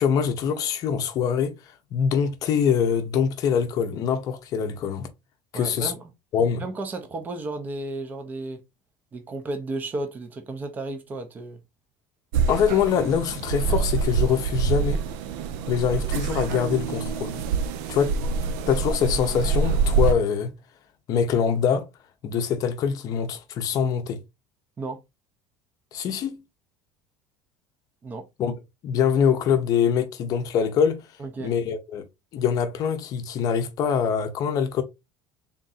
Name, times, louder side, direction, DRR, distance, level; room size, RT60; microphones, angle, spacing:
voice 1, 0.0-5.1 5.5-5.9 6.3-6.6 12.5-15.0 15.7-17.4 17.9-18.1 18.7-20.5 21.1-21.9 22.2-24.2 25.9-26.4 28.4-28.5 28.8-31.1 31.4-32.1 32.3-34.8, left 7 dB, 40° left, 0.7 m, -24 dB
voice 2, 5.5-6.1 6.6-8.6 9.1-11.6 24.8-25.0 28.0-28.3 31.2-31.5, right 2 dB, 15° right, 0.6 m, -33 dB
sound 1, 12.3-20.1, right 5 dB, 75° right, 0.5 m, -26 dB
3.6 x 2.5 x 4.1 m
cardioid pair, 170°, 10 cm